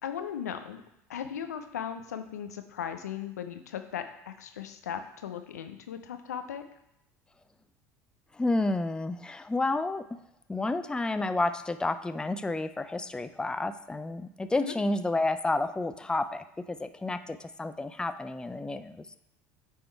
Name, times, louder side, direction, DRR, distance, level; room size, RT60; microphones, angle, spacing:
voice 1, 0.0-0.8 1.1-6.6 14.6-14.7, left 8 dB, 90° left, 8 dB, 0.6 m, -37 dB
voice 2, 8.3-10.2 10.5-19.1, left 2 dB, 10° left, 11 dB, 0.4 m, -30 dB
8.7 x 3.6 x 4.5 m, 0.80 s
hypercardioid pair, 75°, 9 cm